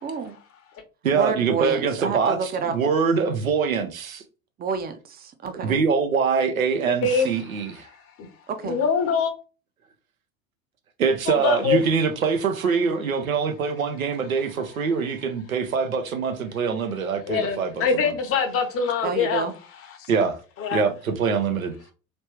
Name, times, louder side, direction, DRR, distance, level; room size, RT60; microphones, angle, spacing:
voice 1, 0.0-0.4 1.1-2.7 4.6-5.8 8.5-8.8 19.0-19.5, right 5 dB, 25° right, 0.6 m, -29 dB
voice 2, 1.0-4.2 5.6-7.9 11.0-18.1 20.1-20.4 20.7-21.8, right 5 dB, 80° right, 0.8 m, -24 dB
voice 3, 6.9-7.3 8.2-8.3 8.6-9.3 11.3-11.8 17.3-19.5 20.0-20.1 20.6-20.9, left 5 dB, 35° left, 0.8 m, -24 dB
3.2 x 3.1 x 3.0 m
figure-of-eight pair, 75°, 41 cm